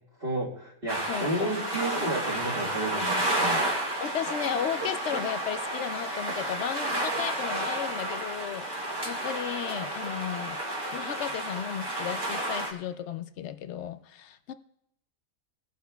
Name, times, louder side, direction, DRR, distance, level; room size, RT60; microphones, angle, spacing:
voice 1, 0.2-3.6, right 1 dB, 40° right, -7 dB, 1.9 m, -32 dB
sound 1, 0.9-12.7, right 1 dB, 20° right, 1.2 m, -31 dB
voice 2, 1.1-1.5 4.0-10.6 10.9-14.5, left 9 dB, 65° left, 12 dB, 0.8 m, -34 dB
18.0 x 11.0 x 2.3 m, 0.77 s
omnidirectional pair, 1.4 m